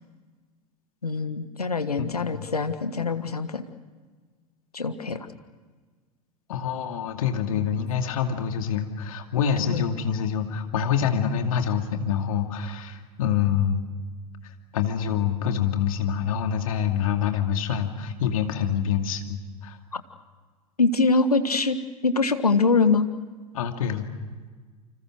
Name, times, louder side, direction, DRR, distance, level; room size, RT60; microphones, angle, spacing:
voice 1, 1.0-3.6 4.7-5.3 9.6-9.8 19.9-20.0 20.8-21.8 22.0-23.1, left 4 dB, 85° left, 10 dB, 1.4 m, -23 dB
voice 2, 2.0-2.4 6.5-13.8 14.7-19.8 23.5-24.1, left 8 dB, 65° left, 5 dB, 2.6 m, -26 dB
29.5 x 26.0 x 6.3 m, 1.4 s
figure-of-eight pair, 85°, 19 cm